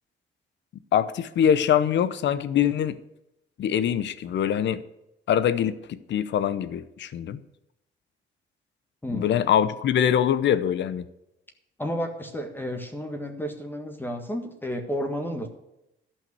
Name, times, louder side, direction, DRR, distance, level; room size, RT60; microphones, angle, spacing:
voice 1, 0.9-3.0 3.6-4.8 5.3-7.4 9.1-11.0, left 9 dB, 65° left, 15 dB, 0.8 m, -23 dB
voice 2, 9.0-9.5 11.8-15.5, equal, 10° left, 4 dB, 1.6 m, -32 dB
12.5 x 5.7 x 8.0 m, 0.87 s
cardioid pair, 90°, 20 cm